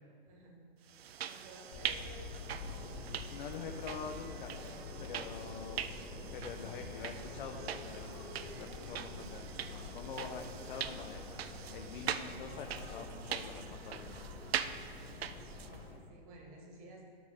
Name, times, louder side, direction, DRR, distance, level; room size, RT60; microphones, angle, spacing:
voice 1, 0.2-0.7 1.2-2.3 15.4-17.0, right 2 dB, 35° right, 0 dB, 1.9 m, -54 dB
sound 1, 0.9-15.8, right 9 dB, 80° right, 0.5 m, -43 dB
Subway metro underground, 1.7-16.0, left 3 dB, 35° left, 1.6 m, -47 dB
Organ, 3.0-14.0, left 4 dB, 5° left, 0.6 m, -61 dB
voice 2, 3.3-4.5 5.0-8.1 8.6-11.5 11.7-14.3, left 6 dB, 55° left, 3 dB, 0.8 m, -46 dB
13.0 x 5.3 x 3.6 m, 2.1 s
hypercardioid pair, 140°, 30 cm